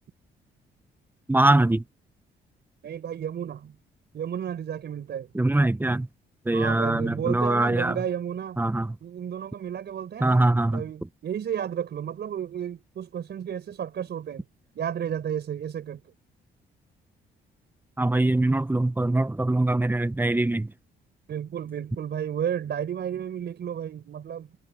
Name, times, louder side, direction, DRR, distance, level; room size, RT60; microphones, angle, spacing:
voice 1, 1.3-1.8 5.3-6.1 6.4-8.0 8.6-9.0 10.2-10.8 18.0-20.7, right 2 dB, 10° right, 0.9 m, -23 dB
voice 2, 2.8-3.7 4.1-5.3 6.5-8.6 9.0-10.4 10.7-14.4 14.7-16.0 21.3-24.5, right 9 dB, 60° right, 4.4 m, -32 dB
cardioid pair, 90°, 20 cm